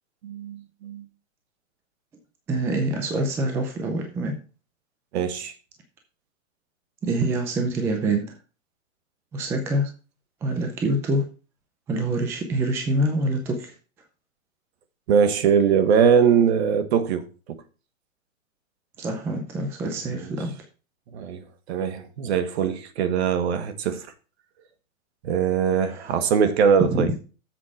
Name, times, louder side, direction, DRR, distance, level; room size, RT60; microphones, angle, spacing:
voice 1, 0.2-1.0 5.1-5.5 15.1-17.2 17.5-17.6 20.1-20.3 21.1-24.1 25.2-27.1, right 7 dB, 50° right, 1.4 m, -22 dB
voice 2, 2.5-4.3 7.0-8.3 9.3-9.9 10.4-11.2 11.9-13.7 19.0-20.5 25.9-26.0 26.9-27.1, right 1 dB, 5° right, 0.5 m, -25 dB
7.6 x 4.6 x 7.1 m
hypercardioid pair, 150°, 40 cm